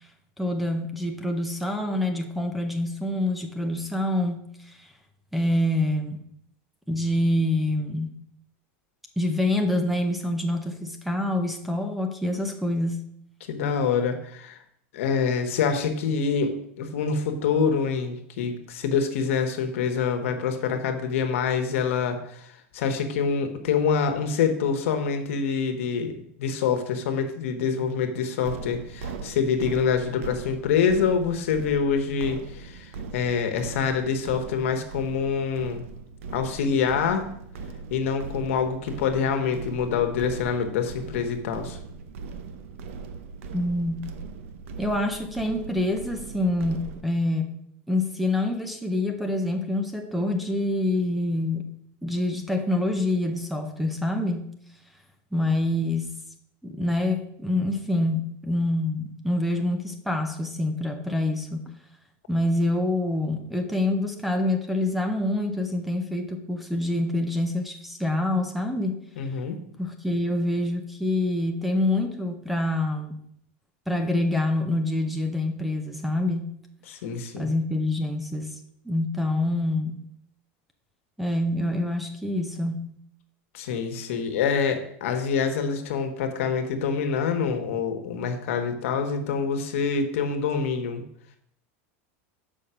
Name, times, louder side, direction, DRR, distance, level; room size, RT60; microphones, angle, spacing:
voice 1, 0.4-4.8 5.3-6.2 6.9-8.1 9.2-13.1 43.5-44.1 44.8-47.5 47.9-51.6 52.0-54.6 55.3-56.1 56.6-61.8 62.3-69.0 69.8-73.2 73.9-76.6 77.3-78.5 78.9-80.0 81.2-82.9, left 1 dB, ahead, 6 dB, 0.6 m, -26 dB
voice 2, 13.5-14.6 14.9-35.8 36.3-37.3 37.9-41.8 69.2-69.6 76.9-77.5 83.5-91.0, left 6 dB, 85° left, 6 dB, 1.2 m, -26 dB
sound 1, 28.4-47.0, right 4 dB, 80° right, 0.8 m, -39 dB
6.4 x 5.3 x 5.7 m, 0.71 s
supercardioid pair, 160°, 7 cm